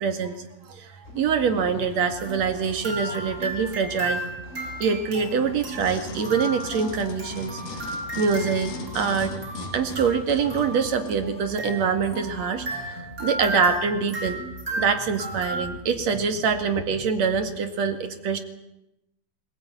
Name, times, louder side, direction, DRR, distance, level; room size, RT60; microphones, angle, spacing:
voice 1, 0.0-4.3 4.8-7.6 8.2-9.4 9.7-14.4 14.8-18.4, right 6 dB, 50° right, 7 dB, 2.9 m, -25 dB
sound 1, 1.0-17.4, equal, 20° left, 6.2 m, -42 dB
sound 2, 2.2-15.6, right 1 dB, 25° right, 7.1 m, -35 dB
sound 3, 5.7-11.2 11.8-11.9, left 4 dB, 60° left, 4.2 m, -39 dB
20.5 x 19.5 x 9.7 m, 0.86 s
omnidirectional pair, 4.3 m